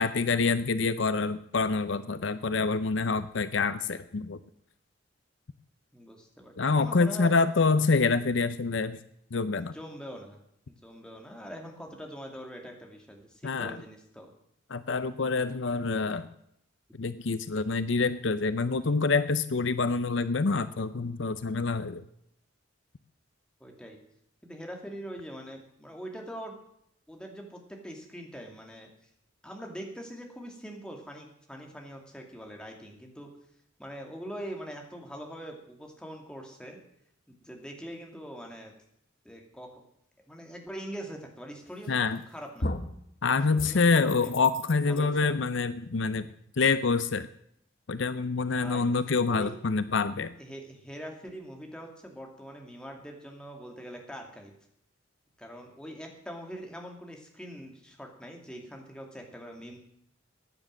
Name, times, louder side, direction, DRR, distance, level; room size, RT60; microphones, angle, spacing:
voice 1, 0.0-4.4 6.6-9.0 9.3-9.7 13.4-13.8 14.7-16.3 17.0-22.0 41.9-42.2 43.2-46.3 46.6-47.3 47.9-50.3, left 4 dB, 65° left, 13 dB, 0.6 m, -26 dB
voice 2, 5.9-7.3 9.5-14.3 23.6-24.0 24.4-26.5 27.1-28.9 29.4-33.3 33.8-36.8 37.4-38.7 39.2-39.7 40.3-42.7 43.5-44.3 44.7-45.4 48.6-48.9 49.3-49.5 50.4-54.5 55.4-59.8, equal, 5° left, 1 dB, 2.5 m, -43 dB
sound 1, 41.8-42.2 42.6-43.0 43.6-45.0, left 1 dB, 45° left, 1.1 m, -36 dB
15.0 x 9.8 x 7.6 m, 0.72 s
head